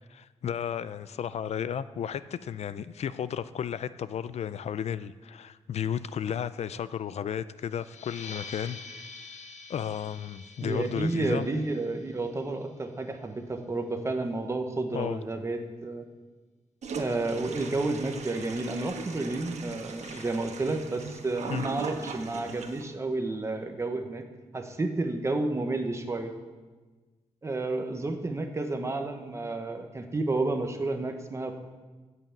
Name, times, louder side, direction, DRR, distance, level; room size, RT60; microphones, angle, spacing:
voice 1, 0.1-8.8 9.7-11.5 14.9-15.2 20.0-20.2 21.5-21.7, left 8 dB, 65° left, 15 dB, 0.4 m, -33 dB
sound 1, 7.7-13.0, left 4 dB, 80° left, 1.2 m, -46 dB
voice 2, 10.6-16.0 16.9-24.2 24.5-26.4 27.4-31.5, right 2 dB, 25° right, 6 dB, 1.0 m, -31 dB
Toilet flush, 16.8-22.9, right 5 dB, 75° right, 1.3 m, -39 dB
16.5 x 5.7 x 7.2 m, 1.3 s
wide cardioid pair, 160°, 12 cm